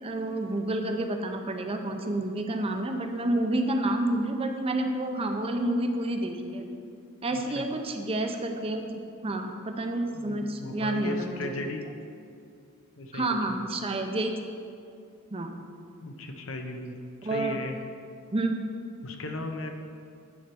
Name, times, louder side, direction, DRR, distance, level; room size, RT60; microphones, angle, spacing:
voice 1, 0.0-6.6 7.2-11.7 13.1-14.3 15.3-15.5 17.2-17.6 18.3-18.6, right 1 dB, 25° right, 5 dB, 0.6 m, -29 dB
voice 2, 7.3-7.7 10.1-11.8 13.0-13.7 16.0-16.9 17.2-17.8 19.0-19.8, left 2 dB, 65° left, 4 dB, 0.8 m, -37 dB
9.5 x 4.4 x 6.8 m, 2.4 s
head